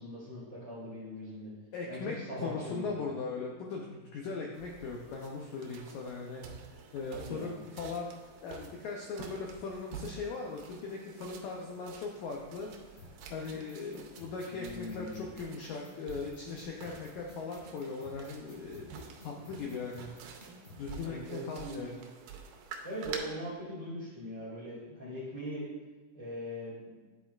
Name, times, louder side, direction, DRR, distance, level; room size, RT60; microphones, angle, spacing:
voice 1, 0.0-1.5 1.8-2.9 7.1-7.5 14.5-15.2 21.0-21.9 22.8-25.7 26.1-26.9, equal, 20° right, -9 dB, 0.9 m, -41 dB
voice 2, 1.7-13.0 13.3-20.1 20.8-21.9, left 4 dB, 80° left, 0 dB, 1.7 m, -39 dB
sound 1, 4.5-23.2, right 6 dB, 80° right, 2.3 m, -49 dB
sound 2, 13.0-20.8, left 2 dB, 50° left, 1.3 m, -53 dB
10.0 x 4.3 x 2.3 m, 1.3 s
omnidirectional pair, 4.0 m